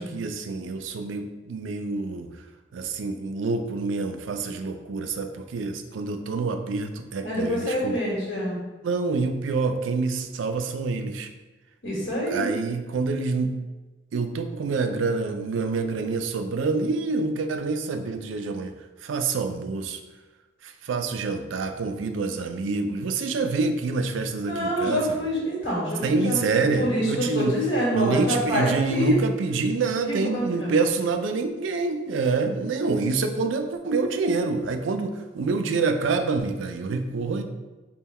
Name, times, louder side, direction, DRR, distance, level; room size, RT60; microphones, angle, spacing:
voice 1, 0.0-2.3 2.7-8.0 8.8-11.3 12.3-13.6 14.1-18.7 19.0-20.0 20.6-25.2 26.0-27.5 27.9-37.4, right 4 dB, 85° right, 7 dB, 0.4 m, -27 dB
voice 2, 7.2-8.6 11.8-12.5 24.4-26.4 26.8-29.2 30.1-30.7, equal, 85° left, -5 dB, 1.5 m, -26 dB
3.6 x 2.2 x 4.2 m, 1.2 s
head